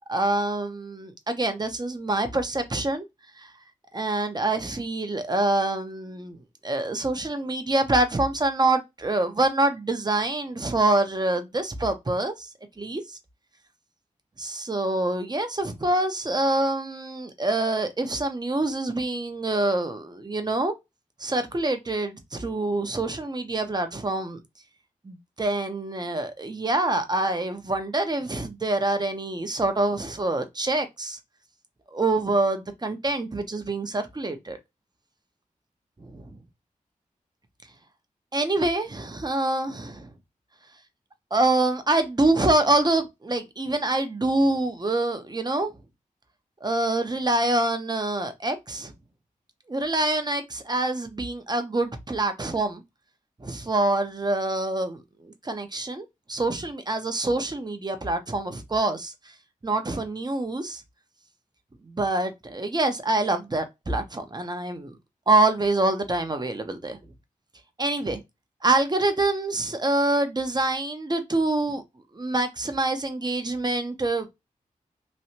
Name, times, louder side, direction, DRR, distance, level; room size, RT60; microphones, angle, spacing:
voice 1, 0.1-3.1 3.4-3.5 3.9-12.5 12.8-13.2 14.4-20.7 21.2-24.4 25.0-31.2 31.9-34.6 36.0-36.4 38.3-40.1 41.3-45.7 46.6-48.9 49.7-52.8 53.4-59.3 59.6-60.8 61.8-64.9 65.3-67.0 67.8-68.2 68.6-71.8 72.1-74.3, right 2 dB, 30° right, 0.9 m, -26 dB
3.2 x 2.7 x 2.8 m
cardioid pair, 50°, 14 cm